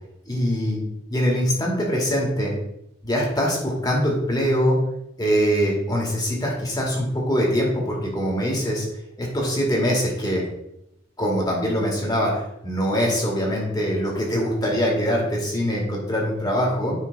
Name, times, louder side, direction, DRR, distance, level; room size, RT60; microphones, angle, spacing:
voice 1, 0.3-0.8 1.1-2.5 3.0-4.8 5.2-8.9 9.2-10.4 11.2-12.3 12.6-16.9, equal, 20° left, -2 dB, 2.2 m, -23 dB
9.0 x 3.9 x 5.3 m, 0.80 s
head